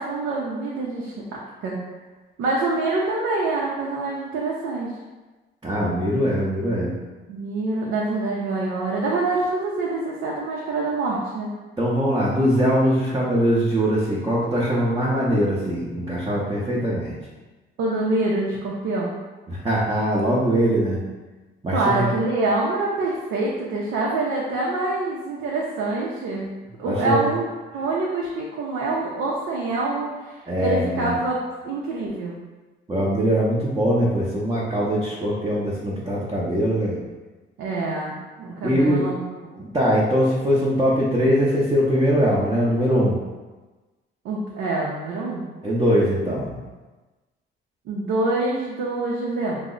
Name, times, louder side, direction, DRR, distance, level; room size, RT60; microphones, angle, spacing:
voice 1, 0.0-1.8 2.4-5.0 7.3-11.5 17.8-19.1 21.7-26.5 26.8-27.4 27.7-32.4 37.6-39.7 44.2-45.4 47.9-49.6, right 2 dB, 90° right, -4 dB, 0.5 m, -26 dB
voice 2, 5.6-6.9 11.8-17.2 19.5-21.0 21.6-22.1 26.9-27.3 30.5-31.2 32.9-37.0 38.6-39.1 39.6-43.2 45.6-46.6, equal, 20° right, -6 dB, 0.6 m, -21 dB
3.1 x 2.0 x 3.7 m, 1.2 s
cardioid pair, 90°, 20 cm